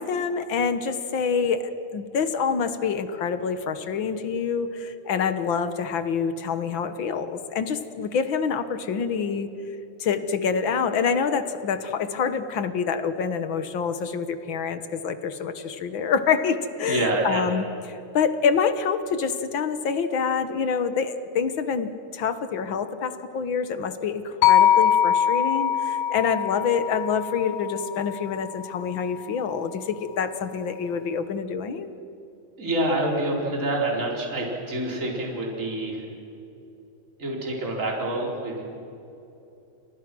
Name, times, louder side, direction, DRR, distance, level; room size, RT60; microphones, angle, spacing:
voice 1, 0.0-9.5 10.0-31.9, left 6 dB, 55° left, 10 dB, 1.5 m, -26 dB
voice 2, 16.8-17.5 32.6-36.1 37.2-38.6, right 1 dB, 25° right, -2 dB, 4.6 m, -27 dB
sound 1, 24.4-28.6, left 9 dB, 80° left, 2.2 m, -22 dB
29.5 x 29.0 x 6.2 m, 2.8 s
omnidirectional pair, 3.5 m